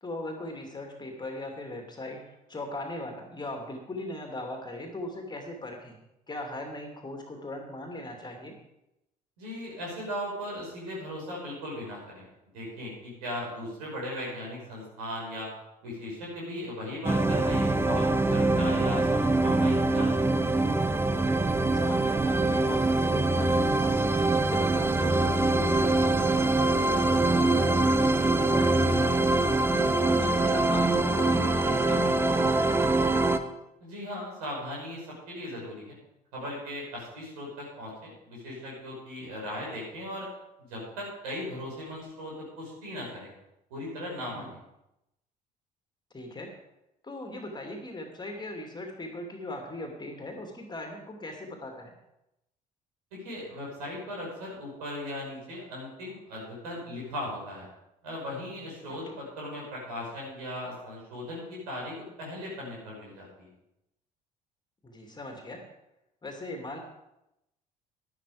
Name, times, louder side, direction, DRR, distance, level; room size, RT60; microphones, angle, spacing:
voice 1, 0.0-6.0 6.3-8.5 21.5-24.0 24.4-29.3 29.7-33.0 44.3-44.5 46.1-46.5 47.0-51.9 58.9-59.2 64.8-65.6 66.2-66.8, left 1 dB, 20° left, 3 dB, 2.6 m, -39 dB
voice 2, 9.4-12.3 12.5-15.5 15.8-20.3 33.8-36.0 36.3-40.3 40.7-43.3 43.7-44.6 53.1-57.7 58.0-63.5, left 1 dB, 70° right, -3 dB, 5.8 m, -38 dB
sound 1, 17.0-33.4, right 2 dB, 10° right, 0.9 m, -24 dB
11.5 x 11.5 x 5.0 m, 0.88 s
figure-of-eight pair, 55°, 21 cm